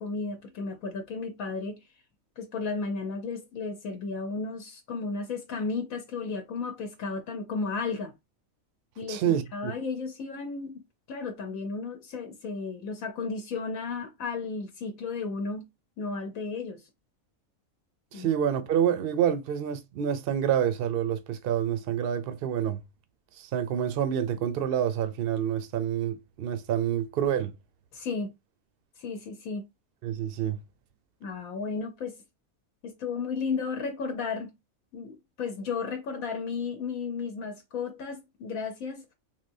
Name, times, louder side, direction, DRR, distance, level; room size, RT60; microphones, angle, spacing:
voice 1, 0.0-1.8 2.4-8.1 9.0-9.2 9.5-10.8 11.1-15.7 16.0-16.8 18.1-18.3 27.9-28.3 29.0-29.7 31.2-32.2 32.8-34.5 34.9-39.0, left 4 dB, 80° left, 1.1 m, -34 dB
voice 2, 9.1-9.7 18.1-22.8 23.4-27.5 30.0-30.6, right 9 dB, 60° right, 0.6 m, -27 dB
3.6 x 2.8 x 2.6 m
omnidirectional pair, 1.5 m